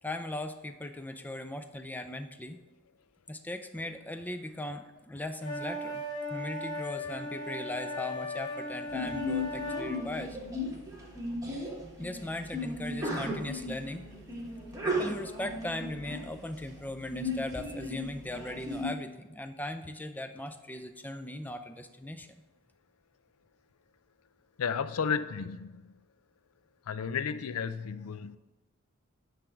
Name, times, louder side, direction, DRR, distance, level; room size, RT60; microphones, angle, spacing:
voice 1, 0.0-2.6 3.3-6.0 6.3-10.4 12.0-14.0 14.8-22.3, left 1 dB, 10° left, 9 dB, 0.4 m, -38 dB
sound 1, 5.4-9.9, left 1 dB, 40° left, 2.8 m, -37 dB
Sneeze, 8.9-18.9, left 1 dB, 15° right, 1.3 m, -36 dB
voice 2, 24.6-25.9 26.9-28.4, left 6 dB, 70° left, 13 dB, 0.4 m, -33 dB
10.0 x 3.4 x 5.8 m, 1.1 s
head